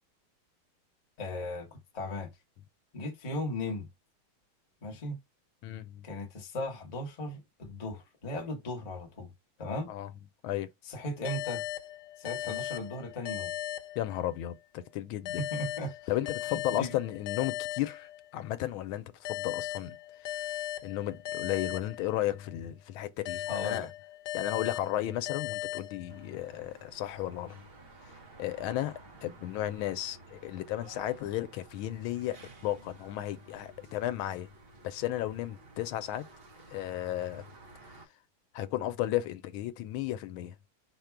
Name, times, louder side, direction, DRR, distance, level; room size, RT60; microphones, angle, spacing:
voice 1, 1.2-2.3 2.9-3.9 4.8-5.2 6.0-9.3 9.6-9.9 10.8-11.6 12.2-13.5 15.4-15.9 16.5-17.0 23.5-23.9, left 1 dB, 30° left, 0.7 m, -37 dB
voice 2, 5.6-6.1 9.9-10.1 10.4-10.7 12.4-12.6 14.0-15.4 16.1-20.0 20.2-23.9 24.3-27.7 28.4-34.5 34.8-36.2 36.7-37.5 38.5-40.6, left 13 dB, 85° left, 1.4 m, -34 dB
sound 1, 11.2-14.6 15.3-18.6 19.2-22.6 23.3-26.6, left 13 dB, 65° left, 1.2 m, -38 dB
sound 2, 26.1-38.1, right 3 dB, 50° right, 0.7 m, -54 dB
5.3 x 2.2 x 4.5 m
omnidirectional pair, 2.2 m